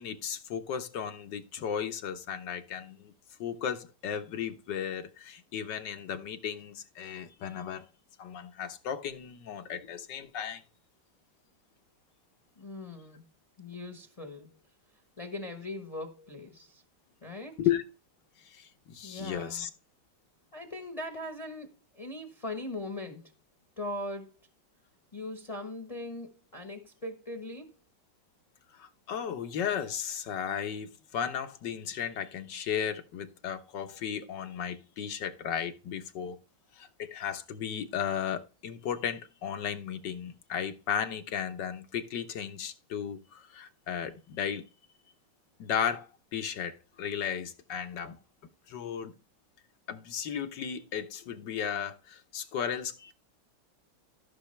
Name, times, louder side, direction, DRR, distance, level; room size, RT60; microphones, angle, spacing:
voice 1, 0.0-3.1 3.4-7.9 8.2-10.6 17.6-17.8 18.5-19.7 28.7-36.4 36.7-44.6 45.6-46.1 46.3-48.2 48.7-49.1 49.9-53.1, left 8 dB, 75° left, 1.7 m, -35 dB
voice 2, 12.6-13.3 13.6-14.5 15.2-16.8 17.2-17.6 19.0-19.7 20.5-23.3 23.8-24.4 25.1-27.7, left 2 dB, 20° left, 1.0 m, -40 dB
14.5 x 6.3 x 3.3 m
omnidirectional pair, 1.9 m